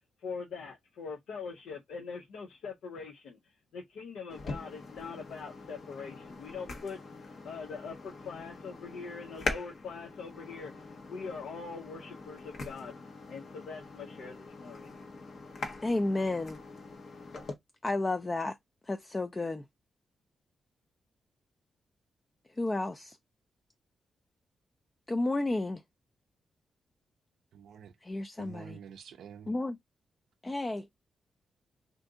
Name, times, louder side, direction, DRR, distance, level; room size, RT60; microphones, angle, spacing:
voice 1, 0.2-13.0 13.3-14.9, left 5 dB, 90° left, 0.5 m, -43 dB
sound 1, 4.3-17.5, left 3 dB, 65° left, 0.8 m, -43 dB
voice 2, 15.8-16.6 17.8-18.6 18.9-19.6 22.6-23.2 25.1-25.8 28.0-28.8 29.5-29.8 30.4-30.9, left 2 dB, 25° left, 0.3 m, -31 dB
voice 3, 27.5-27.9 28.4-29.5, right 7 dB, 85° right, 0.4 m, -48 dB
2.6 x 2.5 x 3.5 m
cardioid pair, 80°, 0 cm